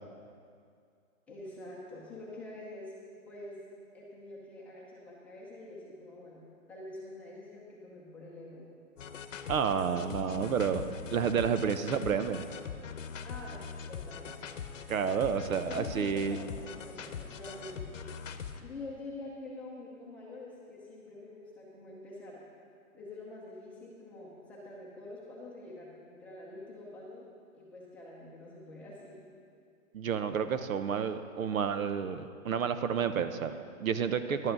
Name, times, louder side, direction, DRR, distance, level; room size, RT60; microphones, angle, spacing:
voice 1, 1.3-2.9 3.3-3.6 3.9-8.7 13.2-14.4 15.7-17.8 18.6-22.4 22.9-27.3 27.5-29.2, left 2 dB, 5° left, -7 dB, 0.7 m, -46 dB
sound 1, 9.0-18.6, left 6 dB, 60° left, 0.9 m, -42 dB
voice 2, 9.5-10.8 11.1-12.4 14.9-16.4 29.9-34.5, right 7 dB, 75° right, 10 dB, 0.8 m, -30 dB
11.5 x 8.3 x 5.2 m, 2.3 s
hypercardioid pair, 155°, 42 cm